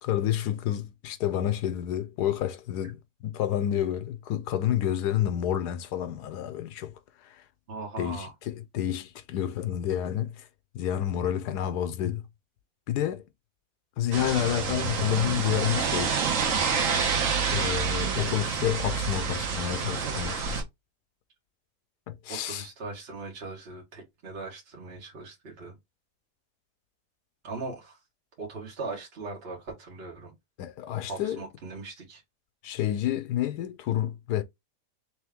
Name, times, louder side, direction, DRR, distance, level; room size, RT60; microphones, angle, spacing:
voice 1, 0.0-6.9 7.2-7.4 8.0-10.5 10.7-12.2 12.9-13.2 14.0-16.2 17.5-20.4 22.1-22.7 30.6-31.4 32.6-34.4, left 11 dB, 80° left, 1.2 m, -29 dB
voice 2, 7.7-8.3 20.0-20.4 22.3-25.8 27.4-28.0 28.4-30.3 31.1-32.2, right 3 dB, 40° right, 1.7 m, -39 dB
sound 1, 14.1-20.6, right 5 dB, 55° right, 1.2 m, -28 dB
3.4 x 3.2 x 3.5 m
omnidirectional pair, 1.8 m